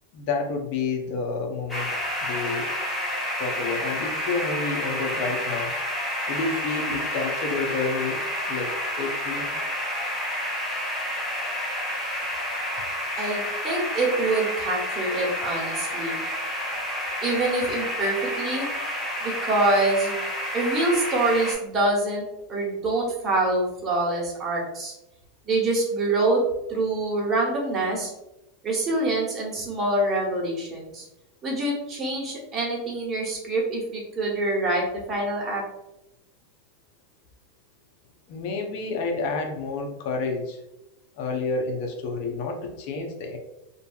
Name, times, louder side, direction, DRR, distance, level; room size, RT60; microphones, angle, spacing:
voice 1, 0.1-1.9 2.2-2.7 3.4-5.7 6.3-8.2 8.5-9.5 38.3-40.6 41.2-43.4, left 4 dB, 60° left, 3 dB, 0.5 m, -29 dB
sound 1, 1.7-21.5, equal, 10° left, 0.9 m, -30 dB
voice 2, 13.2-16.2 17.2-18.7 19.2-20.2 20.5-22.2 22.5-24.9 25.5-26.4 26.7-28.1 28.6-31.0 31.4-35.6, right 2 dB, 25° right, -3 dB, 1.0 m, -25 dB
2.6 x 2.2 x 2.3 m, 0.91 s
hypercardioid pair, 110°, 0 cm